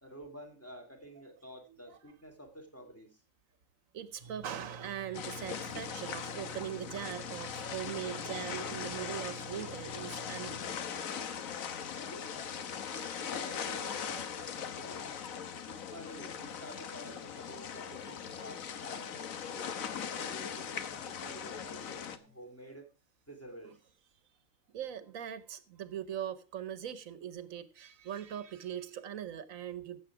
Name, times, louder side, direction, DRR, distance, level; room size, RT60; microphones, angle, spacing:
voice 1, 0.0-3.2 11.9-15.2 15.7-19.2 19.5-22.9 23.3-23.8, right 1 dB, 10° left, 1 dB, 2.5 m, -50 dB
voice 2, 3.9-10.9 24.7-30.0, right 10 dB, 80° right, 14 dB, 1.3 m, -41 dB
sound 1, 4.2-10.6, right 4 dB, 30° right, 1.9 m, -50 dB
sound 2, 5.1-22.2, left 7 dB, 90° left, 1.4 m, -40 dB
15.0 x 7.3 x 4.8 m, 0.36 s
omnidirectional pair, 1.4 m